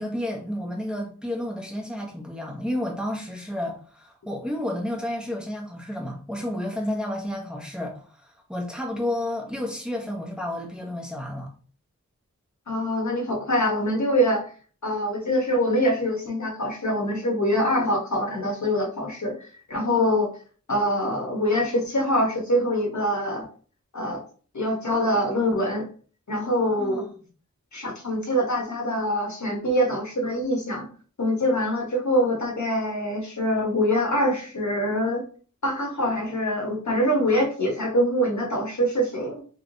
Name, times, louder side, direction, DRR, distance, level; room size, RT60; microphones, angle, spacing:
voice 1, 0.0-11.5 26.8-27.1, left 1 dB, 5° right, 0.9 m, -31 dB
voice 2, 12.7-14.4 14.8-20.3 20.7-23.5 23.9-24.2 24.5-25.9 26.3-27.1 27.7-30.9 31.2-35.2 35.6-39.4, equal, 65° left, 1.1 m, -24 dB
3.2 x 3.1 x 2.6 m
wide cardioid pair, 55°, 31 cm